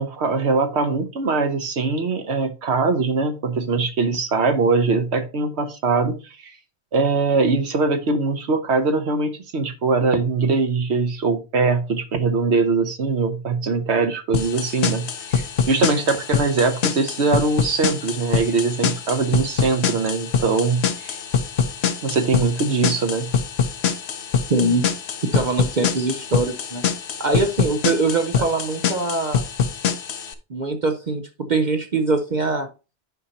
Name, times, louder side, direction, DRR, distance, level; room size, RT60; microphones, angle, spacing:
voice 1, 0.0-6.5 6.9-21.2 22.0-23.3, right 4 dB, 80° right, 1.2 m, -22 dB
sound 1, 14.3-30.3, left 7 dB, 75° left, 1.0 m, -25 dB
voice 2, 24.5-24.8 25.3-26.8 27.2-29.4 30.5-32.7, right 3 dB, 45° right, 0.8 m, -22 dB
9.2 x 5.4 x 2.8 m
omnidirectional pair, 1.1 m